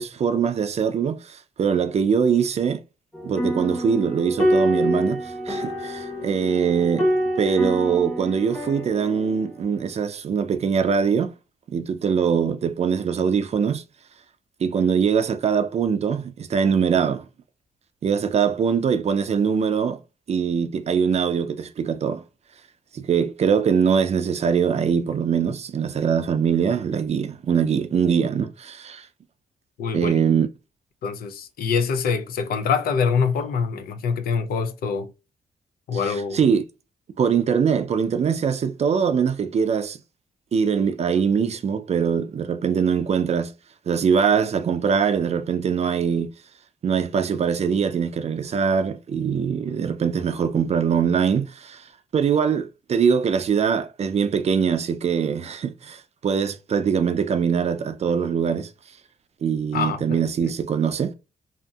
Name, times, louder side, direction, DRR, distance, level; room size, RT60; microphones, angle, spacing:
voice 1, 0.0-2.8 3.2-11.3 11.7-13.8 14.6-17.2 18.0-20.0 20.3-22.2 22.9-29.1 29.9-30.5 36.1-36.6 37.2-40.0 40.5-43.5 43.9-46.3 46.8-51.9 52.1-58.7 59.4-61.1, right 6 dB, 45° right, 0.4 m, -22 dB
sound 1, 3.1-9.7, equal, 10° left, 0.8 m, -26 dB
voice 2, 29.8-30.1 31.0-35.1 35.9-36.4 59.7-60.5, left 5 dB, 80° left, 0.5 m, -25 dB
2.8 x 2.6 x 2.3 m
cardioid pair, 85°, 15 cm